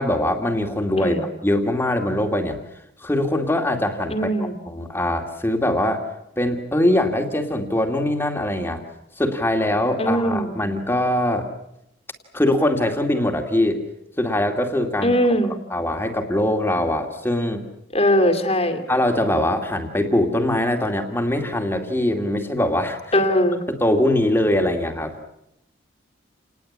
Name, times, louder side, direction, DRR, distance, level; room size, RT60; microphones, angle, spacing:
voice 1, 0.0-2.6 3.0-6.0 6.4-8.8 9.2-11.5 12.3-13.8 14.2-15.2 15.7-17.7 18.9-23.2 23.7-25.1, left 1 dB, 10° left, 4 dB, 2.4 m, -22 dB
voice 2, 4.1-4.6 10.0-10.6 15.0-15.5 17.9-18.8 23.1-23.6, equal, 30° left, 6 dB, 2.5 m, -20 dB
29.0 x 20.0 x 8.7 m, 0.81 s
head